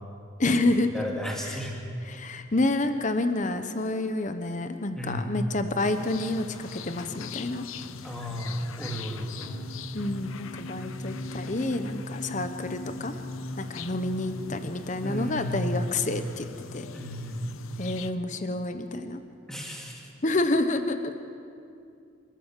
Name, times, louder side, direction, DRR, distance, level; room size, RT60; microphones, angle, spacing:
voice 1, 0.4-1.0 1.5-1.6 2.1-7.6 9.9-13.1 13.6-16.5 16.7-16.8 17.8-19.2 20.2-21.2, left 2 dB, 35° left, 9 dB, 0.9 m, -28 dB
voice 2, 0.9-1.7 4.9-5.4 8.0-9.6 15.0-16.0 16.9-17.6 19.5-20.1, equal, ahead, -1 dB, 2.5 m, -33 dB
sound 1, 5.8-18.1, left 5 dB, 85° left, 0.7 m, -42 dB
sound 2, 9.4-15.0, left 1 dB, 65° left, 3.6 m, -39 dB
27.5 x 13.5 x 7.4 m, 2.5 s
head